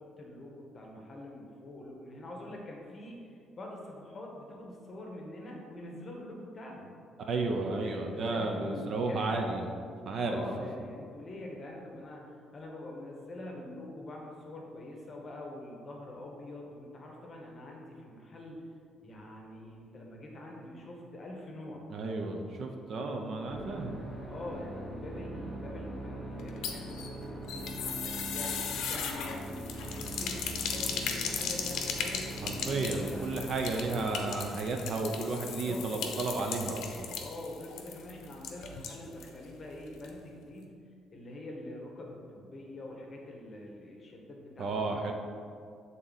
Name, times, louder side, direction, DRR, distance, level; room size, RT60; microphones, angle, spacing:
voice 1, 0.0-6.9 7.8-9.4 10.2-18.6 19.0-21.8 23.3-23.7 24.3-33.2 35.6-35.8 37.2-40.7 41.1-45.1, left 1 dB, 25° left, -1 dB, 0.9 m, -45 dB
voice 2, 7.2-9.7 10.0-10.4 21.9-24.0 32.4-37.1 44.6-45.1, right 3 dB, 40° right, 3 dB, 0.5 m, -33 dB
sound 1, 23.5-34.2, right 1 dB, 10° right, 1.1 m, -42 dB
sound 2, 26.4-39.4 39.6-39.7 40.0-40.1, left 6 dB, 70° left, 0.6 m, -37 dB
7.5 x 3.8 x 4.0 m, 2.4 s
cardioid pair, 175°, 0 cm